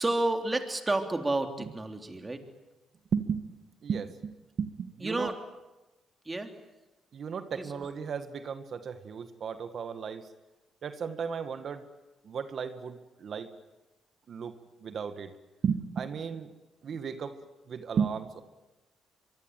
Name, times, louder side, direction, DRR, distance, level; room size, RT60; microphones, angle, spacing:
voice 1, 0.0-2.4 5.0-5.3 6.2-6.5 7.6-7.7, right 2 dB, 20° right, 5 dB, 3.4 m, -30 dB
voice 2, 3.1-3.4 3.8-4.3 4.6-5.3 7.1-10.3 10.8-11.9 12.2-13.5 14.3-15.3 15.6-16.5 16.8-17.4 17.7-18.4, right 6 dB, 55° right, 10 dB, 1.8 m, -34 dB
24.0 x 23.5 x 9.2 m, 1.0 s
cardioid pair, 90°, 0 cm